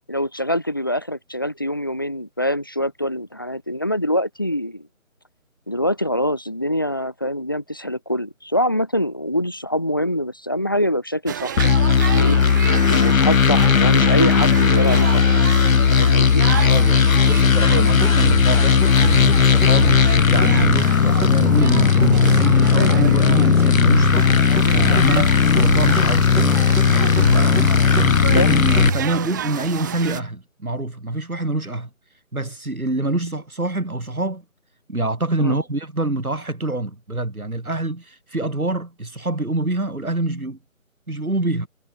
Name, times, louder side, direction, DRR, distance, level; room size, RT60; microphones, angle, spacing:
voice 1, 0.1-4.9 5.7-12.4 12.9-15.3 15.9-16.4 28.3-28.5 35.4-35.6, equal, 15° left, 1.0 m, -24 dB
sound 1, 11.3-30.2, right 10 dB, 15° right, 2.6 m, -31 dB
sound 2, 11.6-28.9, left 6 dB, 70° left, 0.7 m, -16 dB
voice 2, 16.7-18.8 19.2-19.9 20.3-26.4 26.8-27.2 27.5-31.9 32.3-34.4 34.9-40.6 41.1-41.7, right 2 dB, 90° right, 3.1 m, -26 dB
sound 3, 18.0-22.9 23.9-26.1 26.4-26.9 27.2-27.7 28.0-28.5 28.8-29.3, right 2 dB, 70° right, 4.4 m, -25 dB
figure-of-eight pair, 160°, 42 cm